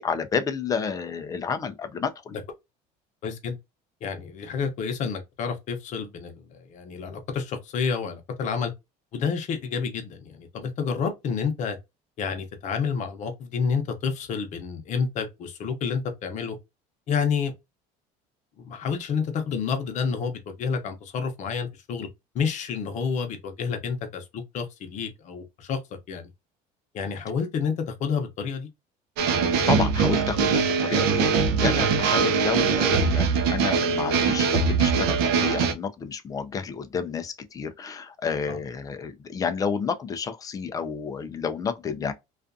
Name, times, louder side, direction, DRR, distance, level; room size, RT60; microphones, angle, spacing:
voice 1, 0.0-2.1 29.7-42.1, left 6 dB, 20° left, 0.4 m, -30 dB
voice 2, 3.2-3.6 4.0-8.7 9.1-11.8 12.2-16.6 17.1-17.5 18.6-22.1 22.3-25.8 26.1-26.3 26.9-27.7 28.0-28.7 38.5-38.6, left 6 dB, 45° left, 0.7 m, -29 dB
sound 1, 29.2-35.7, right 5 dB, 65° right, 0.5 m, -22 dB
2.4 x 2.3 x 2.5 m
cardioid pair, 145°, 17 cm